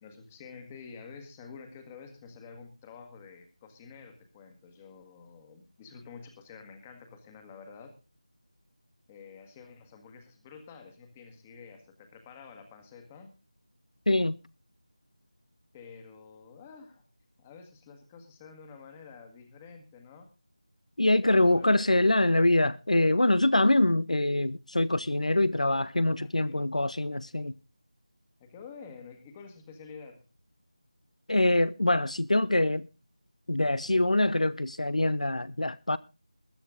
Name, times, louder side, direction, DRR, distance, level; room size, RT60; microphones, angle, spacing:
voice 1, 0.0-8.0 9.1-13.3 15.7-17.1 17.4-20.3 21.2-22.1 26.2-26.7 28.4-30.2, left 5 dB, 10° left, 1.6 m, -49 dB
voice 2, 14.1-14.4 21.0-27.5 31.3-32.9 33.5-36.0, left 1 dB, 75° left, 0.8 m, -24 dB
21.0 x 8.6 x 3.8 m
figure-of-eight pair, 170°, 4 cm